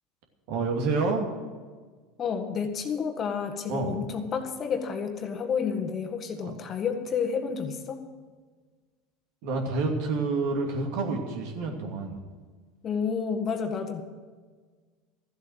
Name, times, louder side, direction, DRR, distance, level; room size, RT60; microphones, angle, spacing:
voice 1, 0.5-1.3 3.7-3.9 6.4-6.5 9.4-12.2, right 3 dB, 65° right, 2 dB, 2.5 m, -28 dB
voice 2, 2.2-8.0 12.8-14.0, left 6 dB, 40° left, 6 dB, 1.6 m, -30 dB
13.5 x 8.1 x 7.9 m, 1.5 s
hypercardioid pair, 80°, 0 cm